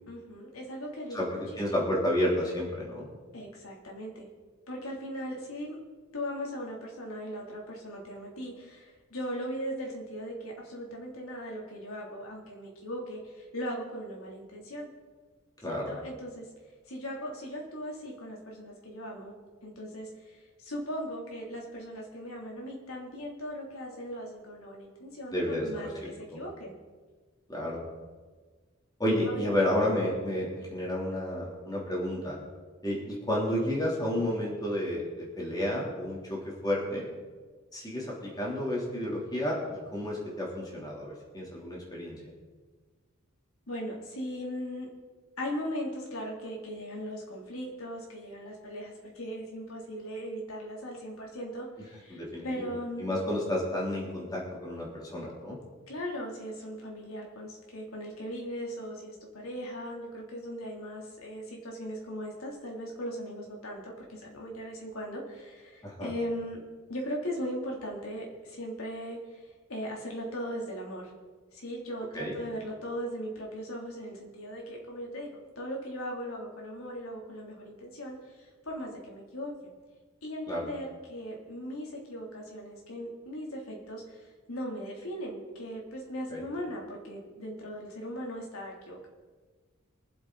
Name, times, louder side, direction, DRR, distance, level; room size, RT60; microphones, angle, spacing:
voice 1, 0.1-1.4 3.3-4.3 4.7-5.8 6.1-14.9 15.7-16.5 16.9-19.3 19.6-26.7 29.2-29.9 43.7-44.9 45.4-53.1 55.9-66.6 66.9-71.1 71.5-75.3 75.5-79.7 80.2-89.1, equal, 80° left, -1 dB, 3.1 m, -38 dB
voice 2, 1.1-3.1 15.6-15.9 25.3-26.4 27.5-27.8 29.0-32.4 32.8-37.0 37.7-39.6 39.9-42.2 52.1-52.7 53.0-55.6 65.8-66.1 72.1-72.4 80.5-80.7 86.3-86.4, left 1 dB, 20° left, -4 dB, 3.3 m, -31 dB
23.5 x 7.9 x 4.1 m, 1.4 s
head